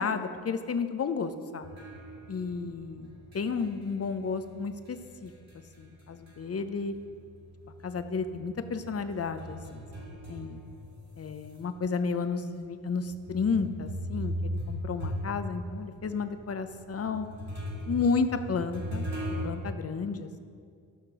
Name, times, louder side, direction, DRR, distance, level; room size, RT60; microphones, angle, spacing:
voice 1, 0.0-1.7 2.3-5.3 5.8-6.9 7.8-10.6 11.2-17.3 17.8-19.1 19.4-20.4, left 5 dB, 40° left, 9 dB, 0.8 m, -32 dB
sound 1, 1.6-6.6 6.9-11.6 12.2-12.3 13.0-19.4, equal, 45° right, 2.6 m, -39 dB
13.5 x 5.9 x 5.0 m, 2.2 s
cardioid pair, 65°, 36 cm